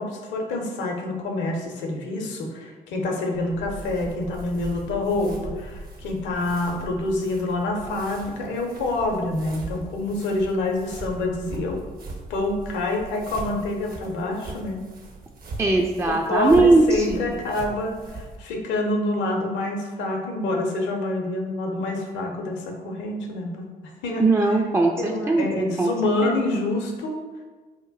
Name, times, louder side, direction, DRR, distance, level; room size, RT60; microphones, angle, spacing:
voice 1, 0.0-11.8 12.3-14.8 16.1-23.7 24.0-24.2 25.0-27.2, left 2 dB, 65° left, 1 dB, 0.7 m, -27 dB
sound 1, 3.3-18.4, right 2 dB, 45° right, 0.7 m, -40 dB
voice 2, 15.6-17.2 24.2-25.9 26.2-26.3, right 2 dB, 15° right, 1 dB, 0.4 m, -20 dB
2.9 x 2.1 x 4.0 m, 1.3 s
hypercardioid pair, 45°, 20 cm